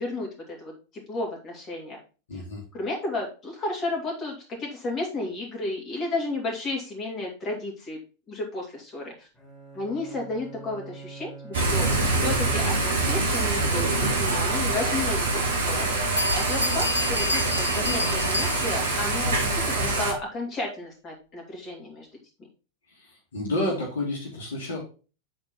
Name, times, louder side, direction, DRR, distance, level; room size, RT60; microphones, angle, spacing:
voice 1, 0.0-2.0 2.3-2.4 2.7-8.0 8.3-9.3 9.7-15.9 16.3-22.1, left 2 dB, 25° left, -1 dB, 2.8 m, -33 dB
voice 2, 2.3-2.6 22.9-24.8, left 1 dB, 65° left, -1 dB, 2.3 m, -30 dB
Bowed string instrument, 9.3-14.2, right 4 dB, 10° left, 2.9 m, -44 dB
Thunder / Rain, 11.5-20.1, right 2 dB, 70° right, 1.9 m, -25 dB
Bell, 16.2-19.0, left 2 dB, 85° left, 0.6 m, -30 dB
7.8 x 4.4 x 4.3 m, 0.34 s
figure-of-eight pair, 90°, 0 cm